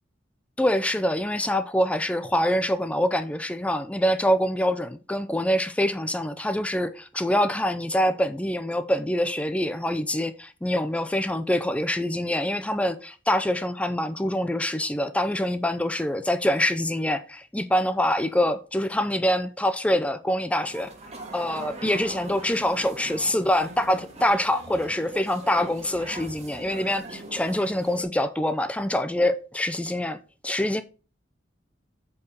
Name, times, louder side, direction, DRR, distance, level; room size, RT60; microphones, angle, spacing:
voice 1, 0.6-20.9 21.3-30.2 30.4-30.8, left 1 dB, 5° left, 0.4 m, -25 dB
sound 1, 20.6-28.0, right 2 dB, 35° right, 1.7 m, -41 dB
8.3 x 4.7 x 5.1 m
head